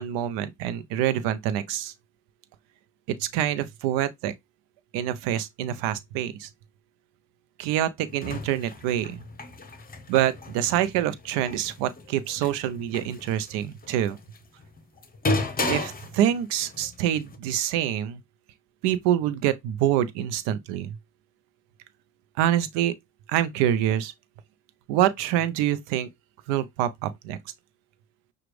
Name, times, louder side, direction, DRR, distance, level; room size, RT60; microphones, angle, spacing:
voice 1, 0.0-1.9 3.1-4.3 4.9-6.5 7.6-9.2 10.1-14.2 15.7-18.2 18.8-21.0 22.4-22.9 23.3-24.1 24.9-26.1 26.5-27.4, right 11 dB, 85° right, 0.7 m, -26 dB
sound 1, 8.1-17.4, left 2 dB, 20° left, 0.9 m, -34 dB
6.0 x 2.4 x 3.1 m
supercardioid pair, 75°, 41 cm